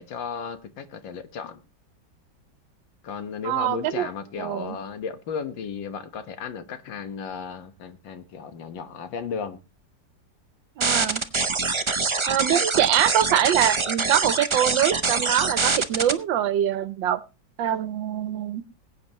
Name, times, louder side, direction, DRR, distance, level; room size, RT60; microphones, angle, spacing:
voice 1, 0.0-1.6 3.0-9.6, left 6 dB, 85° left, 2.0 m, -34 dB
voice 2, 3.4-4.1 4.4-4.8 10.8-11.2 12.3-17.2 17.6-18.6, right 11 dB, 80° right, 1.5 m, -24 dB
sound 1, 10.8-16.1, right 4 dB, 45° right, 0.3 m, -24 dB
21.0 x 8.9 x 3.0 m
omnidirectional pair, 2.0 m